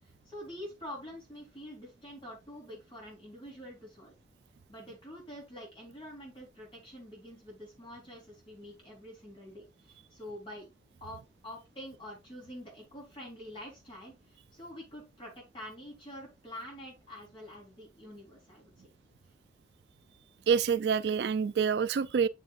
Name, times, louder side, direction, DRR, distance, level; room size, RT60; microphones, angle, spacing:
voice 1, 0.3-4.1 4.7-10.7 11.0-18.9, equal, 30° left, 4.0 m, -46 dB
voice 2, 20.5-22.3, right 6 dB, 70° right, 0.4 m, -27 dB
7.5 x 7.1 x 2.5 m
head